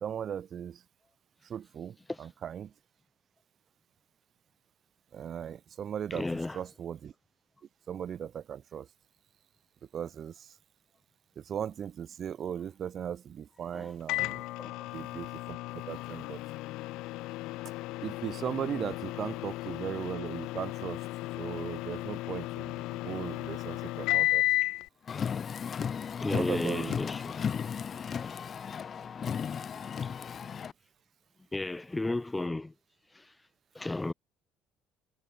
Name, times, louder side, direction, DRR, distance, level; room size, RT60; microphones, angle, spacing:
voice 1, 0.0-0.8 1.5-2.7 5.1-6.3 6.5-7.1 7.9-8.9 9.9-10.3 11.4-14.4 14.9-16.4 18.0-21.0 21.4-24.4 26.3-27.0, right 8 dB, 45° right, 0.4 m, -37 dB
voice 2, 6.1-6.6 13.7-13.9 14.6-14.9 26.2-27.4 28.2-28.4 30.0-30.2 31.5-32.7 33.1-33.3 33.7-34.1, left 2 dB, 15° left, 0.5 m, -34 dB
Microwave oven, 14.1-24.8, left 19 dB, 75° left, 0.5 m, -34 dB
Car, 25.1-30.7, left 7 dB, 40° left, 1.0 m, -35 dB
supercardioid pair, 95°, 0 cm